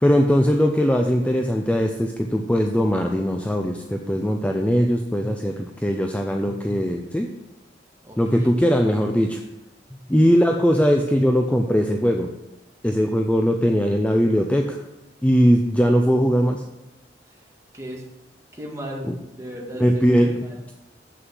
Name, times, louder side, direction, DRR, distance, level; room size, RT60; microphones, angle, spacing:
voice 1, 0.0-7.3 8.2-9.4 9.9-12.3 12.8-14.8 15.2-16.6 19.1-19.2 19.8-20.7, equal, 10° left, 3 dB, 0.5 m, -20 dB
voice 2, 8.0-8.6 17.7-18.0 18.5-19.9 20.4-20.6, equal, 15° right, -2 dB, 2.0 m, -36 dB
7.8 x 6.4 x 6.2 m, 0.95 s
head